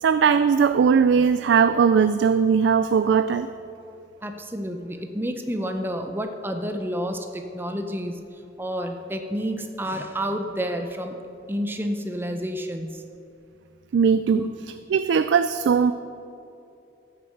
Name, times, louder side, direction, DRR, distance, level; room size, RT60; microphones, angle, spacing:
voice 1, 0.0-3.5 13.9-14.4 14.9-15.9, right 6 dB, 75° right, 11 dB, 0.3 m, -19 dB
voice 2, 4.2-8.2 8.6-11.2 11.5-13.0 14.3-14.5, equal, 10° right, 5 dB, 0.6 m, -29 dB
13.5 x 6.6 x 6.5 m, 2.7 s
head